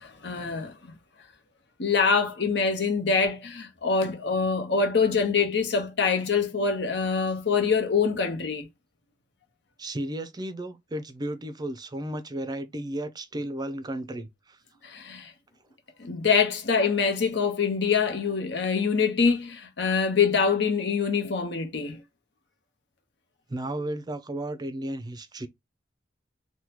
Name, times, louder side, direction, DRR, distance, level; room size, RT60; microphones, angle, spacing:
voice 1, 0.0-0.7 1.8-8.7 14.8-15.3 16.0-22.0, left 5 dB, 65° left, 0.9 m, -25 dB
voice 2, 9.8-14.6 23.5-25.5, right 1 dB, 20° right, 0.5 m, -34 dB
3.5 x 2.2 x 2.9 m
head